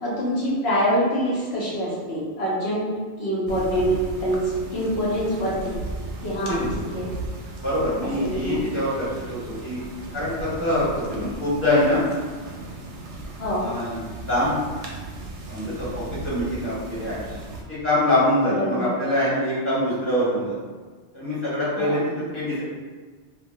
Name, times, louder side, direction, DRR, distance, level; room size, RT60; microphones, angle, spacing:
voice 1, 0.0-2.9 3.2-5.8 6.2-7.1 8.2-8.6 13.4-13.7 18.4-18.9 21.8-22.2, equal, 65° left, -6 dB, 1.1 m, -25 dB
sound 1, 3.5-17.6, right 2 dB, 90° right, 0.9 m, -36 dB
voice 2, 7.6-9.8 10.1-12.1 13.6-14.0 14.3-14.6 15.5-17.3 17.7-20.5 21.1-22.0 22.3-22.6, left 1 dB, 10° left, -11 dB, 1.3 m, -24 dB
2.8 x 2.3 x 2.7 m, 1.5 s
omnidirectional pair, 1.2 m